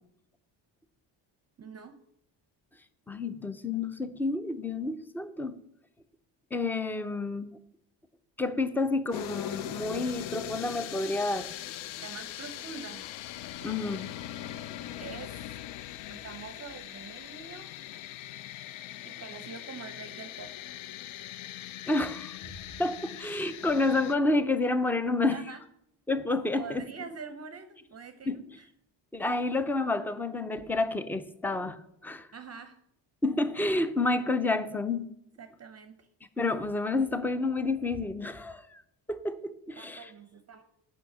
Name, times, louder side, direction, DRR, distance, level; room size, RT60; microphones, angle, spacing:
voice 1, 1.6-1.9 12.0-13.1 13.6-13.7 15.0-15.4 16.1-17.7 19.0-20.5 25.3-25.6 26.6-28.7 32.3-32.8 35.4-36.1 39.8-40.6, right 5 dB, 35° right, 9 dB, 0.6 m, -45 dB
voice 2, 3.1-5.6 6.5-7.5 8.4-11.5 13.6-14.1 21.9-22.3 22.8-25.4 26.1-26.9 28.3-28.4 29.1-32.3 33.2-35.1 36.4-38.8 39.1-40.1, left 2 dB, 5° left, 12 dB, 0.4 m, -29 dB
sound 1, 9.1-24.2, left 13 dB, 80° left, 0.6 m, -41 dB
9.1 x 5.6 x 7.1 m, 0.73 s
cardioid pair, 140°, 47 cm